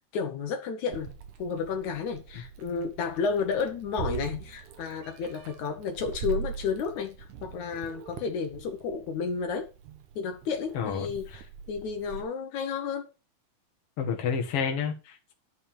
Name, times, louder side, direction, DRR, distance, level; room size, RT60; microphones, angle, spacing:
voice 1, 0.1-1.1 1.4-7.2 7.4-9.7 10.2-13.1, left 5 dB, 75° left, 2.6 m, -32 dB
Meow, 0.9-12.2, right 7 dB, 75° right, 2.9 m, -41 dB
voice 2, 10.7-11.4 14.0-15.3, left 6 dB, 55° left, 2.6 m, -30 dB
11.0 x 5.5 x 7.1 m
omnidirectional pair, 3.4 m